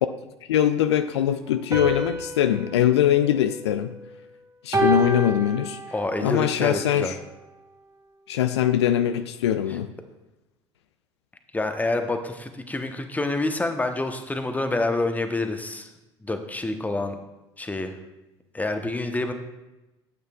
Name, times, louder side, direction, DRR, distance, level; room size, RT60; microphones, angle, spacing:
voice 1, 0.5-3.9 4.6-5.8 6.2-7.2 8.3-9.9, left 10 dB, 70° left, 10 dB, 0.4 m, -22 dB
sound 1, 1.7-4.2 4.7-6.3, right 1 dB, 25° right, 1.4 m, -29 dB
voice 2, 5.9-7.2 11.5-15.9 16.2-17.2 17.6-17.9 18.5-19.3, left 2 dB, 10° left, 7 dB, 0.9 m, -27 dB
12.5 x 8.5 x 2.3 m, 1.0 s
figure-of-eight pair, 65°, 15 cm